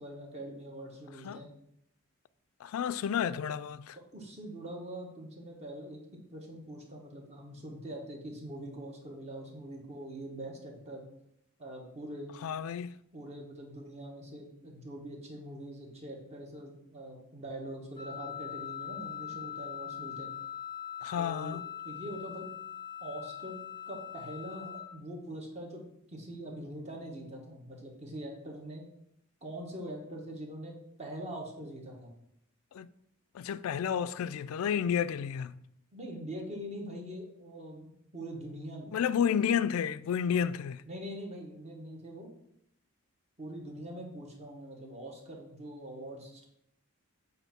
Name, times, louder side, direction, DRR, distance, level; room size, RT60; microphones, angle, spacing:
voice 1, 0.0-1.5 4.1-6.0 6.3-11.0 11.6-12.3 13.1-20.3 21.2-21.6 21.8-22.5 23.0-23.6 23.9-25.8 26.1-28.9 29.4-32.1 35.9-39.0 40.9-42.3 43.4-46.5, right 1 dB, 30° right, 1.2 m, -43 dB
voice 2, 2.6-4.0 12.4-13.0 21.0-21.6 32.7-32.9 33.3-35.5 38.9-40.8, left 8 dB, 70° left, 0.3 m, -31 dB
Wind instrument woodwind instrument, 18.0-24.9, left 9 dB, 20° left, 0.5 m, -42 dB
7.9 x 2.7 x 5.7 m
head